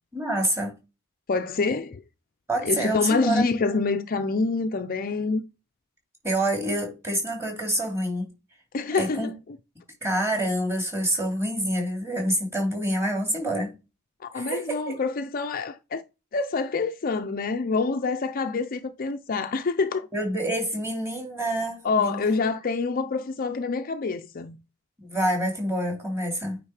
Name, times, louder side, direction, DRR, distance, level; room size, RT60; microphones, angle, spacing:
voice 1, 0.1-0.7 2.5-3.5 6.2-8.3 8.9-9.3 10.0-13.7 14.3-15.0 20.1-22.4 25.0-26.6, right 1 dB, 10° right, 2.7 m, -27 dB
voice 2, 1.3-2.0 2.6-5.4 8.7-9.3 14.2-16.0 16.3-20.1 21.8-24.6, left 4 dB, 40° left, 0.5 m, -26 dB
9.1 x 3.6 x 4.8 m
head